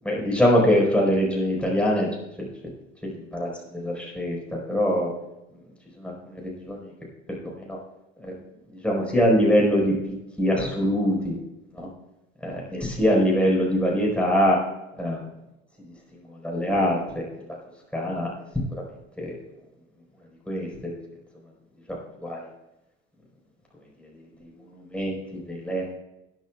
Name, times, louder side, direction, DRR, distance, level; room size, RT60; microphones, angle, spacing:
voice 1, 0.0-2.1 3.3-4.4 4.7-5.1 6.0-6.9 7.4-7.8 8.2-8.3 8.8-9.9 10.4-11.3 11.7-11.9 12.4-14.6 15.0-15.2 16.1-17.2 17.9-18.3 19.2-19.3 20.5-20.7 21.9-22.4 24.4-25.9, equal, 5° left, -3 dB, 4.3 m, -23 dB
19.5 x 10.0 x 2.3 m, 0.95 s
figure-of-eight pair, 70°, 38 cm